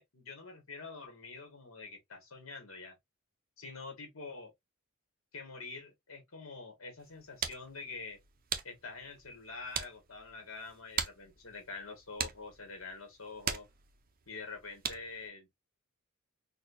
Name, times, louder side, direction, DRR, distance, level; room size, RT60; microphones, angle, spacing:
voice 1, 0.0-3.0 3.6-4.5 5.3-8.2 8.6-13.7 14.3-15.5, left 4 dB, 75° left, 1.5 m, -46 dB
sound 1, 7.0-15.3, right 7 dB, 45° right, 0.6 m, -42 dB
4.1 x 2.3 x 2.6 m
head